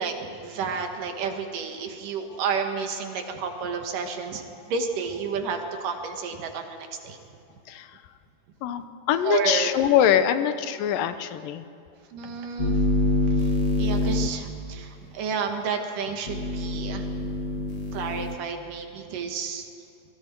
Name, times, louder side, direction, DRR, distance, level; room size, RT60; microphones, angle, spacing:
voice 1, 0.0-4.4 4.7-7.2 9.2-9.8 10.3-10.4 12.1-17.3 17.9-19.7, right 5 dB, 75° right, 4 dB, 3.2 m, -31 dB
voice 2, 8.6-11.6, left 10 dB, 85° left, 10 dB, 2.6 m, -23 dB
sound 1, 12.6-14.3 16.3-18.3, left 2 dB, 35° left, 1.2 m, -25 dB
27.5 x 22.5 x 4.6 m, 2.6 s
omnidirectional pair, 3.8 m